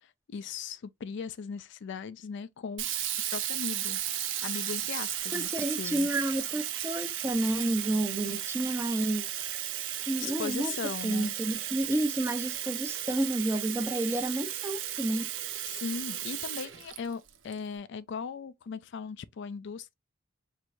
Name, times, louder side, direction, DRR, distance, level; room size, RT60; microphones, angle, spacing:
voice 1, 0.0-2.9 3.3-4.0 4.4-6.1 10.2-11.3 15.7-19.9, left 5 dB, 65° left, 0.4 m, -38 dB
Sink (filling or washing), 2.8-17.5, right 11 dB, 70° right, 0.8 m, -35 dB
voice 2, 5.3-9.3 10.1-10.7 11.0-15.2, right 1 dB, 15° right, 0.8 m, -30 dB
4.6 x 3.1 x 2.5 m
head